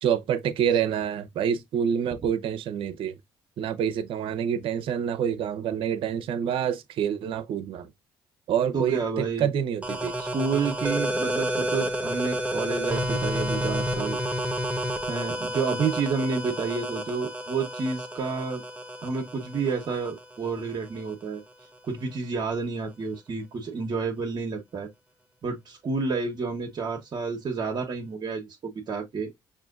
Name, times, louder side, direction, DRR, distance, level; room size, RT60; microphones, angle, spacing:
voice 1, 0.0-3.2 3.6-7.9 8.5-10.1, right 8 dB, 70° right, 0.7 m, -27 dB
voice 2, 8.7-9.5 10.2-14.2 15.1-18.6 19.0-21.4 21.8-24.9 25.4-29.3, right 4 dB, 50° right, 1.0 m, -30 dB
sound 1, 9.8-21.2, equal, 15° right, 0.8 m, -30 dB
5.4 x 2.6 x 2.5 m
supercardioid pair, 75°, 9 cm